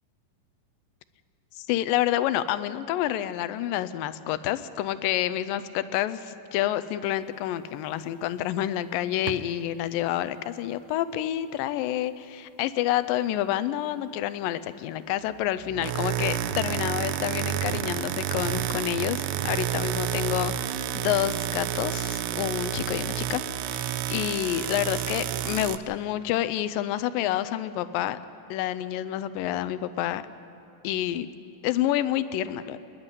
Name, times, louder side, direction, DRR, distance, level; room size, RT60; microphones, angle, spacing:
voice 1, 1.7-28.2 28.5-30.2 30.8-31.3 31.6-32.8, left 12 dB, 80° left, 14 dB, 2.3 m, -28 dB
sound 1, 9.3-9.5 15.6-25.8, right 11 dB, 80° right, 1.8 m, -30 dB
25.5 x 10.5 x 9.8 m, 2.7 s
omnidirectional pair, 4.1 m